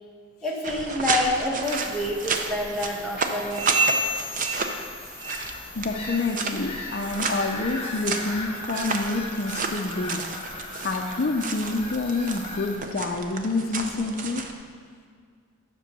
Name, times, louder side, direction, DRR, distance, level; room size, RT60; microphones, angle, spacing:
voice 1, 0.4-3.8, left 1 dB, ahead, -4 dB, 1.1 m, -28 dB
sound 1, 0.6-14.5, right 4 dB, 35° right, 0.6 m, -32 dB
Bird vocalization bird call bird song / Gull seagull, 1.6-12.8, left 3 dB, 25° left, 1.1 m, -39 dB
sound 2, 3.5-5.7 6.0-6.4 6.8-7.1 7.7-7.8 8.5-8.6 9.4-9.5, right 2 dB, 90° right, 0.7 m, -30 dB
voice 2, 5.8-10.2 10.8-14.4, left 3 dB, 45° left, 3 dB, 0.5 m, -28 dB
7.4 x 6.0 x 6.8 m, 2.1 s
head